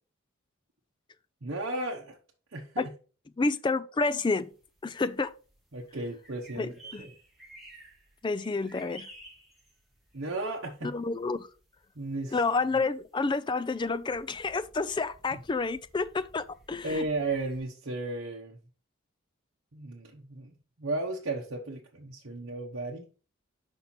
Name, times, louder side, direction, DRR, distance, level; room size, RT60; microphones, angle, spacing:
voice 1, 1.4-2.2 2.5-2.9 5.7-6.7 7.0-7.1 10.1-10.9 11.9-12.4 15.3-15.4 16.8-18.6 19.7-20.5 20.8-23.1, right 2 dB, 60° right, 0.9 m, -34 dB
voice 2, 3.4-4.5 4.8-5.3 6.5-7.0 8.2-9.1 10.8-11.5 12.3-17.0, left 3 dB, 20° left, 0.3 m, -29 dB
sound 1, 4.2-17.6, right 1 dB, ahead, 1.8 m, -55 dB
5.6 x 5.3 x 4.3 m
head